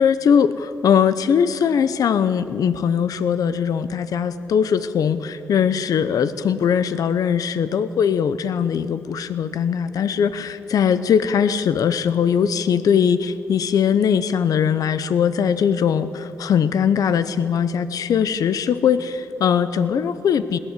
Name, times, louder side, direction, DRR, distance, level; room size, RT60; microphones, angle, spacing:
voice 1, 0.0-20.6, left 7 dB, 85° left, 13 dB, 0.9 m, -20 dB
21.0 x 18.0 x 8.3 m, 2.5 s
cardioid pair, 100°, 6 cm